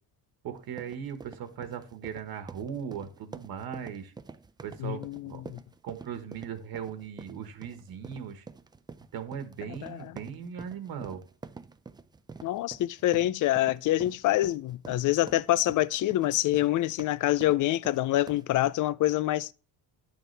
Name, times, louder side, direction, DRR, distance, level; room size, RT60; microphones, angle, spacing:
voice 1, 0.4-4.1 4.6-5.4 5.8-8.4 9.1-11.2, right 8 dB, 65° right, 1.4 m, -38 dB
sound 1, 0.5-18.6, right 4 dB, 10° right, 0.3 m, -48 dB
voice 2, 4.8-5.6 9.8-10.0 12.4-19.5, left 15 dB, 50° left, 0.4 m, -26 dB
10.5 x 6.7 x 3.3 m
cardioid pair, 135°, 40 cm